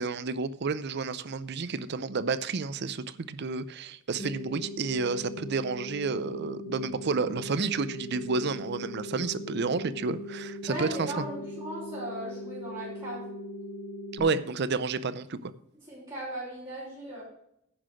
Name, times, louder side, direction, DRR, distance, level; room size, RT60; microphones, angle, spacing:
voice 1, 0.0-11.2 14.1-15.5, right 4 dB, 55° right, 0.6 m, -30 dB
sound 1, 4.2-14.2, left 1 dB, 30° left, 1.4 m, -40 dB
voice 2, 10.7-13.2 15.9-17.2, right 1 dB, 25° right, 4.7 m, -37 dB
10.0 x 5.8 x 6.3 m
head